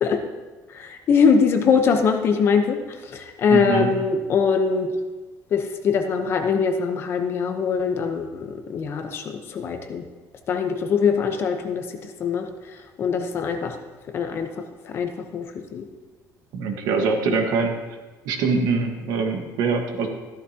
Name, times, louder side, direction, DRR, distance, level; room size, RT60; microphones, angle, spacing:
voice 1, 0.7-4.9 5.5-10.0 10.5-12.5 13.0-13.8 14.1-15.9 17.2-17.4, left 6 dB, 35° left, 6 dB, 0.9 m, -22 dB
voice 2, 3.5-3.9 16.5-17.8 18.2-20.1, right 4 dB, 65° right, 4 dB, 1.5 m, -23 dB
14.0 x 12.0 x 2.9 m, 1.2 s
cardioid pair, 175°, 7 cm